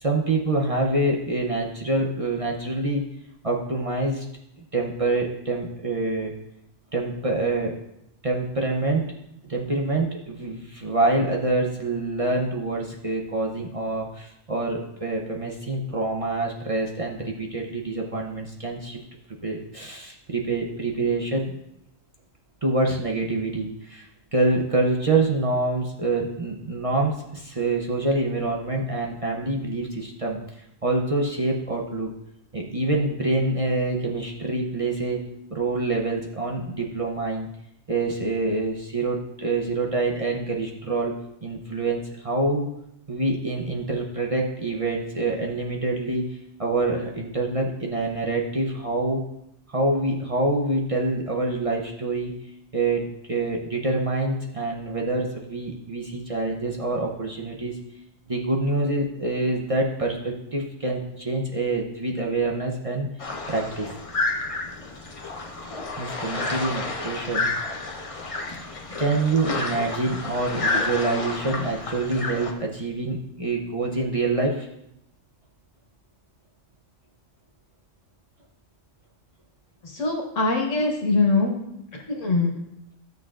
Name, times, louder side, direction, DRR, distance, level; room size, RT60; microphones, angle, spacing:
voice 1, 0.0-3.1 3.4-4.3 4.7-6.3 6.9-7.7 8.2-9.0 9.4-19.0 19.4-21.6 22.6-30.4 30.8-32.1 32.5-35.2 35.5-37.5 37.9-41.1 41.4-42.7 43.1-49.3 49.7-52.3 52.7-57.8 58.3-63.1 63.5-63.9 66.0-67.5 69.0-74.7, right 2 dB, 35° right, -1 dB, 0.8 m, -26 dB
sound 1, 63.2-72.5, left 3 dB, 35° left, 0.7 m, -30 dB
voice 2, 79.8-81.5 82.1-82.5, left 3 dB, 80° left, 0 dB, 1.8 m, -22 dB
12.5 x 6.5 x 2.5 m, 0.82 s
omnidirectional pair, 1.3 m